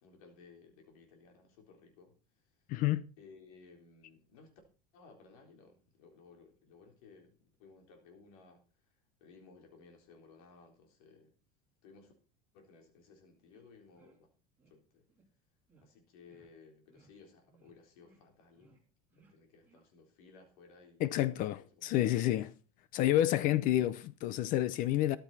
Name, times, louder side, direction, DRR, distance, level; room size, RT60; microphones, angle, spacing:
voice 1, 0.0-2.4 3.2-4.6 4.9-8.6 9.2-11.3 11.8-12.1 12.5-14.3 14.7-15.1 15.8-18.8 19.1-22.0, left 4 dB, 85° left, 3.8 m, -59 dB
voice 2, 2.7-3.1 21.0-22.5 22.9-25.2, left 14 dB, 50° left, 0.7 m, -29 dB
sound 1, 13.5-13.6 13.9-14.2 14.6-14.7 15.1-15.2 15.7-15.9 16.2-16.5 16.9-17.1 17.4-17.7 18.0-18.2 18.5-18.8 19.1-19.3 19.6-19.8, right 3 dB, 10° right, 4.5 m, -66 dB
13.5 x 11.5 x 4.1 m
cardioid pair, 150°, 18 cm